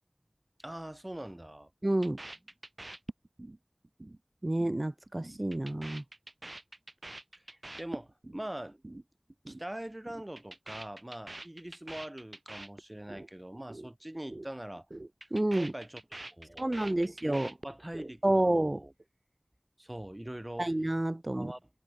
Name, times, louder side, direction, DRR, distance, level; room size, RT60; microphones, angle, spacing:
voice 1, 0.6-1.7 7.5-8.8 9.5-14.9 15.5-16.0 16.3-18.9 19.8-20.7 21.3-21.7, right 1 dB, 30° right, 3.7 m, -43 dB
voice 2, 1.8-2.2 4.4-6.0 15.3-15.7 16.6-17.5 18.2-18.8 20.6-21.5, right 1 dB, 45° right, 0.8 m, -29 dB
sound 1, 2.0-3.6 3.8-4.2 4.4-4.8 5.1-8.4 8.7-9.0 9.3-9.6 9.9-13.3 13.5-13.9 14.1-14.5 14.8-18.1 18.4-19.0, right 2 dB, 60° right, 2.9 m, -45 dB
wide cardioid pair, 40°, 0 cm